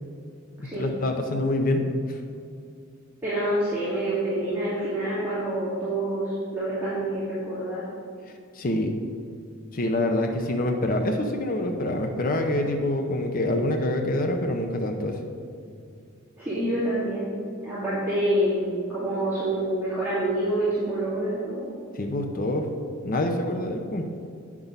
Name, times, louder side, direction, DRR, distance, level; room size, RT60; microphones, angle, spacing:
voice 1, 0.6-2.2 8.5-8.9 9.7-15.2 21.9-22.7 23.0-24.1, left 1 dB, 45° left, 4 dB, 0.7 m, -26 dB
voice 2, 3.2-7.8 16.4-17.3 17.6-21.7, right 1 dB, 10° right, -13 dB, 2.4 m, -27 dB
8.5 x 6.0 x 5.3 m, 2.4 s
head